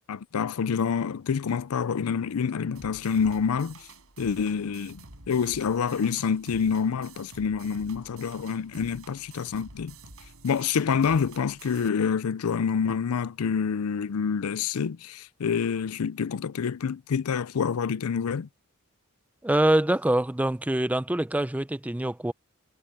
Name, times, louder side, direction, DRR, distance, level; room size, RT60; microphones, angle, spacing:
voice 1, 0.1-3.8 4.2-9.9 10.4-18.5, left 6 dB, 85° left, 0.5 m, -27 dB
sound 1, 2.7-11.9, right 3 dB, 80° right, 5.5 m, -49 dB
voice 2, 19.4-22.3, right 1 dB, 5° right, 0.5 m, -24 dB
head